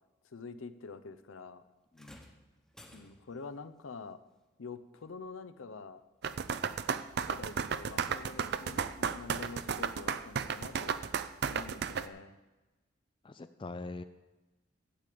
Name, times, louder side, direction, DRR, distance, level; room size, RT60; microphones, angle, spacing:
voice 1, 0.2-1.6 2.9-4.2 4.6-6.0 7.2-10.9 11.4-12.3, left 4 dB, 80° left, 12 dB, 0.6 m, -46 dB
sound 1, 1.9-3.5 5.0-5.1 6.0-6.1, left 1 dB, 5° left, 1.0 m, -56 dB
sound 2, 6.2-12.1, right 6 dB, 55° right, 0.4 m, -33 dB
voice 2, 13.2-14.0, left 2 dB, 25° left, 10 dB, 0.3 m, -42 dB
11.5 x 8.5 x 5.1 m, 1.1 s
head